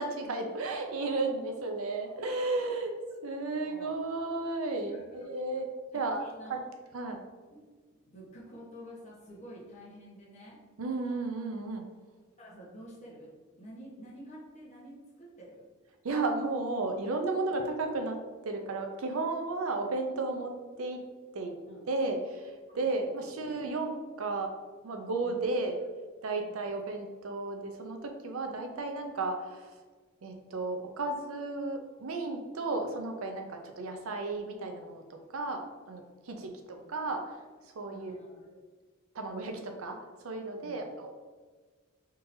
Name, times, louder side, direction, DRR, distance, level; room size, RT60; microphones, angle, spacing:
voice 1, 0.0-2.9 3.2-5.7 5.9-6.6 6.9-7.2 10.8-11.8 16.0-18.2 18.4-21.0 21.3-21.5 21.9-24.5 24.8-25.8 26.2-29.7 30.2-37.4 37.8-38.1 38.5-38.6 39.1-40.0 40.2-41.2, right 3 dB, 80° right, 4 dB, 0.5 m, -34 dB
voice 2, 4.9-5.2 5.9-6.6 7.5-7.6 7.9-10.6 12.4-13.3 13.6-15.6 21.7-21.8 22.7-23.3 25.3-25.4 26.4-26.7 36.2-36.9 37.9-38.4 40.6-40.8, equal, 35° left, -5 dB, 1.0 m, -50 dB
3.7 x 2.8 x 2.6 m, 1.4 s
head